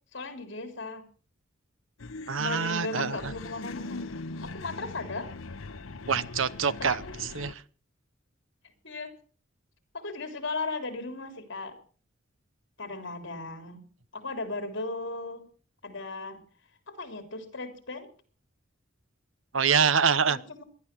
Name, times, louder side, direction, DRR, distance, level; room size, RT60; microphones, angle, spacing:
voice 1, 0.1-1.0 2.4-4.1 4.4-5.3 6.8-7.1 8.8-9.2 9.9-11.8 12.8-13.8 14.1-15.4 15.8-16.4 16.9-18.1 20.3-20.6, left 3 dB, 60° left, 7 dB, 3.5 m, -37 dB
sound 1, 2.0-7.5, left 3 dB, 85° left, 0.9 m, -40 dB
voice 2, 2.3-3.3 6.1-7.0 7.3-7.6 19.5-20.4, right 6 dB, 75° right, 16 dB, 0.9 m, -25 dB
19.0 x 11.5 x 6.1 m, 0.42 s
head